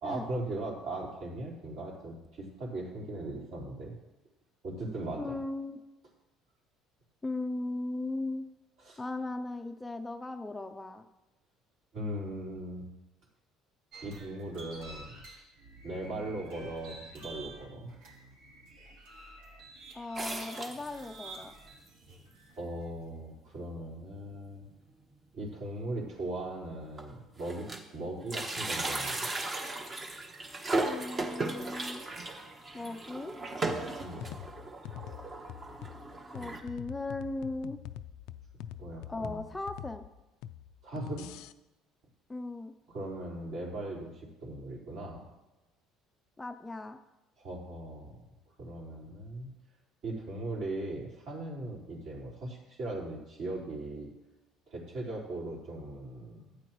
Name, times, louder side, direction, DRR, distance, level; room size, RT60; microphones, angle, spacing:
voice 1, 0.0-3.9 4.6-5.4 8.8-9.0 11.9-12.9 14.0-15.1 15.8-17.9 22.6-24.7 25.3-29.3 34.0-34.2 38.8-39.4 40.8-41.3 42.9-45.2 47.4-48.2 48.6-49.5 50.0-54.1 54.7-56.6, right 1 dB, 60° right, -4 dB, 4.1 m, -39 dB
voice 2, 5.2-5.8 7.2-8.5 9.0-11.0 19.9-21.5 30.8-32.0 32.7-33.4 36.3-37.8 39.1-40.1 42.3-42.7 46.4-47.0, left 2 dB, 10° left, 7 dB, 0.5 m, -37 dB
sound 1, 13.9-22.8, right 2 dB, 80° right, 3.5 m, -50 dB
sound 2, 20.2-21.3 21.9-22.0 22.2-22.3 23.1-23.2 23.6-23.8 24.1-24.2 25.5-25.6 26.3-26.4 26.7-27.9 28.2-36.6, right 2 dB, 25° right, 1.2 m, -36 dB
sound 3, 33.7-41.5, left 11 dB, 80° left, 0.4 m, -45 dB
14.5 x 8.6 x 3.1 m, 1.0 s
cardioid pair, 135°, 0 cm